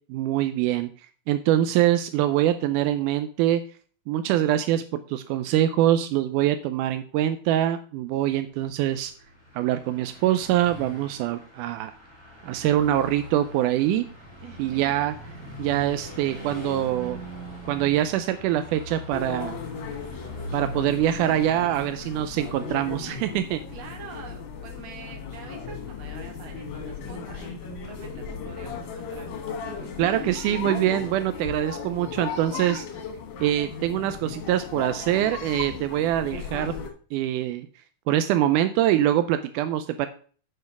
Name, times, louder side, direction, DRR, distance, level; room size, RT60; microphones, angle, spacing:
voice 1, 0.1-0.9 1.3-3.6 4.1-9.1 9.5-11.9 12.4-14.0 14.6-15.1 15.6-17.2 17.7-19.6 20.5-23.6 30.0-32.9 33.4-36.7 37.1-37.7 38.1-40.1, right 12 dB, 85° right, 10 dB, 2.1 m, -24 dB
Car passing by / Truck, 8.7-23.1, equal, 10° right, 3.1 m, -41 dB
voice 2, 14.4-15.0 23.7-30.4, right 5 dB, 60° right, 3 dB, 2.8 m, -45 dB
sound 1, 19.1-36.9, left 5 dB, 80° left, 3.1 m, -36 dB
8.0 x 5.3 x 5.9 m, 0.42 s
omnidirectional pair, 3.6 m